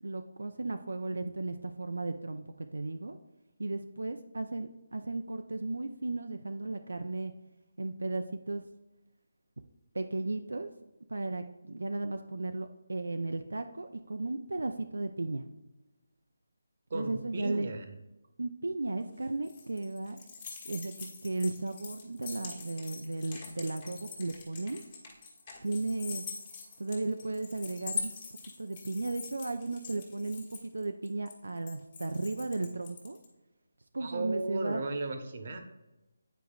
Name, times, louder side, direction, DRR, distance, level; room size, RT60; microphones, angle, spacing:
voice 1, 0.0-3.2 3.6-7.3 7.8-8.6 9.9-10.7 11.1-15.4 16.9-17.7 18.4-20.2 20.6-24.8 25.6-26.2 26.8-28.1 28.6-33.2 33.9-34.8, right 2 dB, 90° right, 6 dB, 0.4 m, -35 dB
voice 2, 16.9-17.9 34.0-35.6, right 2 dB, 50° right, 6 dB, 0.9 m, -35 dB
sound 1, 19.0-33.3, left 5 dB, 30° left, 1.3 m, -44 dB
9.0 x 4.6 x 2.4 m, 1.0 s
figure-of-eight pair, 165°, 0 cm